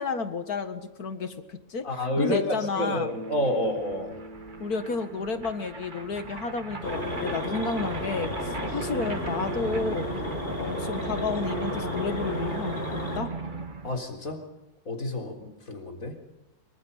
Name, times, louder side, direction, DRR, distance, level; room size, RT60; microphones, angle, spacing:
voice 1, 0.0-3.1 4.6-10.1 10.6-13.3, left 4 dB, 75° left, 8 dB, 2.2 m, -31 dB
voice 2, 1.8-4.2 8.6-8.8 13.8-14.4 14.9-16.2, left 1 dB, 60° left, 3 dB, 4.4 m, -29 dB
sound 1, 2.8-2.9 3.1-14.0, right 4 dB, 35° right, 1.6 m, -38 dB
Bass guitar, 2.8-6.8, right 2 dB, 65° right, 2.2 m, -43 dB
sound 2, 6.8-13.2, left 1 dB, 35° left, 4.8 m, -33 dB
26.5 x 24.5 x 5.6 m, 1.0 s
omnidirectional pair, 1.6 m